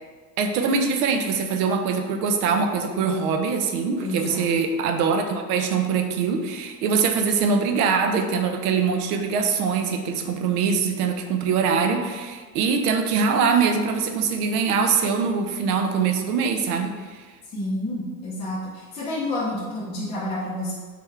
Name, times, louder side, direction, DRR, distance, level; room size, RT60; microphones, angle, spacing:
voice 1, 0.4-17.2, right 5 dB, 80° right, 5 dB, 0.6 m, -23 dB
voice 2, 4.0-4.5 17.5-20.7, left 1 dB, 15° left, -8 dB, 0.4 m, -29 dB
3.4 x 3.4 x 3.2 m, 1.5 s
supercardioid pair, 150°, 45 cm